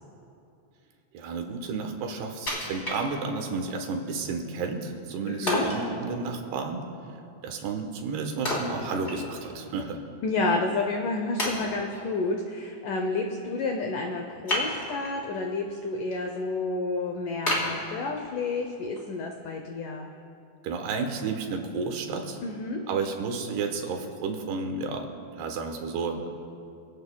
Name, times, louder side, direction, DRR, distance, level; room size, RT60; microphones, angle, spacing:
voice 1, 1.1-6.9 7.4-10.0 20.6-22.4 22.9-26.3, right 4 dB, 75° right, 4 dB, 3.1 m, -32 dB
Wood, 2.5-3.6 4.1-4.2 5.5-5.9 8.5-9.6 9.9-10.0 10.7-10.8 11.4-12.1 14.5-15.2 15.7-16.1 16.6-16.7 17.5-18.5 19.0-19.1, left 1 dB, 15° left, 3.1 m, -30 dB
voice 2, 5.3-5.7 10.2-20.1 22.4-22.8, left 3 dB, 80° left, 3 dB, 1.8 m, -30 dB
25.5 x 16.5 x 2.3 m, 2.6 s
omnidirectional pair, 4.8 m